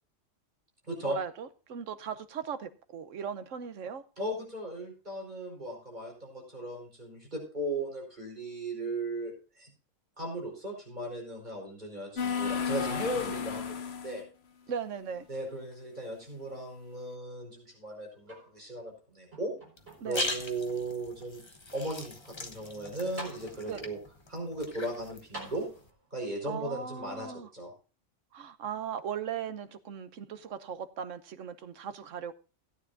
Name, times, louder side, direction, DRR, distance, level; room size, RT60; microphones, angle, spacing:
voice 1, 1.0-4.0 14.7-15.3 20.0-20.3 23.7-23.8 26.5-27.5 28.3-32.3, right 7 dB, 80° right, 12 dB, 1.2 m, -38 dB
voice 2, 4.2-9.7 10.2-14.2 15.3-19.5 20.0-21.4 21.7-24.0 24.3-25.7 26.1-27.7, right 1 dB, 35° right, -1 dB, 5.0 m, -37 dB
sound 1, 12.2-14.2, left 6 dB, 60° left, 1.2 m, -33 dB
sound 2, 18.2-18.9 19.3-20.3 21.0-21.1 22.7-22.8 23.2-23.9 25.3-26.2 27.2-27.3, right 2 dB, 55° right, 5.4 m, -47 dB
sound 3, 19.8-25.9, left 2 dB, 25° left, 1.1 m, -40 dB
17.0 x 9.5 x 2.6 m, 0.34 s
omnidirectional pair, 1.3 m